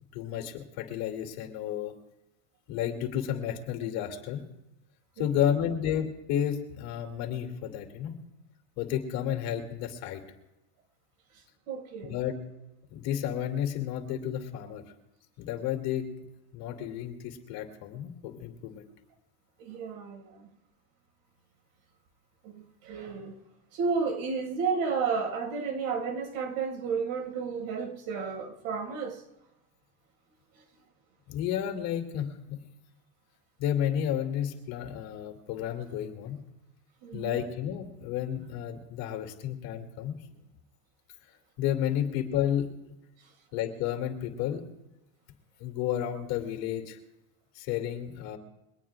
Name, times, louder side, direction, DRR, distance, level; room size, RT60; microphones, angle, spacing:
voice 1, 0.1-1.9 2.7-4.4 5.2-8.2 8.8-10.2 12.1-12.4 12.9-14.8 15.4-16.1 16.5-18.8 31.3-32.6 33.6-36.4 37.1-40.4 41.6-42.7 43.5-44.6 45.6-47.0 47.5-48.4, left 10 dB, 55° left, 4 dB, 2.7 m, -31 dB
voice 2, 11.7-12.2 19.6-20.5 22.4-23.3 23.7-29.2 37.0-37.4, right 5 dB, 75° right, 3 dB, 5.8 m, -32 dB
23.0 x 18.5 x 2.5 m, 0.91 s
supercardioid pair, 140°, 43 cm